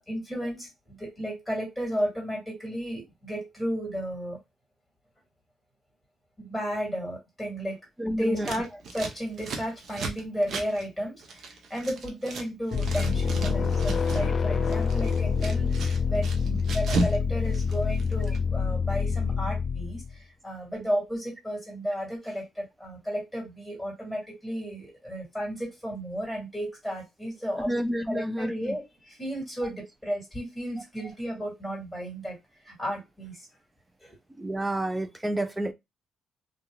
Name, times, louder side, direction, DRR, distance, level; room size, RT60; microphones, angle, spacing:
voice 1, 0.0-4.4 6.4-7.8 8.1-27.7 28.1-32.4 32.6-33.5 34.0-34.2, equal, 5° left, 1.9 m, -33 dB
voice 2, 8.0-8.5 27.7-28.8 34.4-35.7, right 1 dB, 10° right, 0.5 m, -29 dB
Scissors, 8.4-12.5 12.7-14.3 14.6-17.2 17.4-18.4, right 3 dB, 60° right, 0.8 m, -34 dB
sound 1, 12.7-20.1, left 5 dB, 45° left, 0.3 m, -26 dB
3.0 x 2.4 x 2.3 m
cardioid pair, 90°, 0 cm